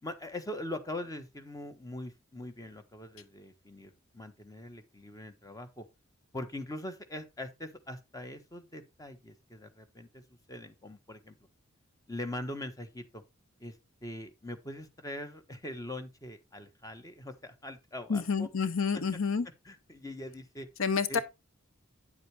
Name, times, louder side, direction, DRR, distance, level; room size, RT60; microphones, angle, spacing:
voice 1, 0.0-5.8 6.3-10.2 10.5-11.3 12.1-13.2 13.6-13.7 14.0-19.0 19.6-20.7 21.1-21.2, left 1 dB, 15° left, 1.2 m, -42 dB
voice 2, 18.1-19.5 20.8-21.2, left 5 dB, 65° left, 0.7 m, -29 dB
9.8 x 7.7 x 3.3 m
head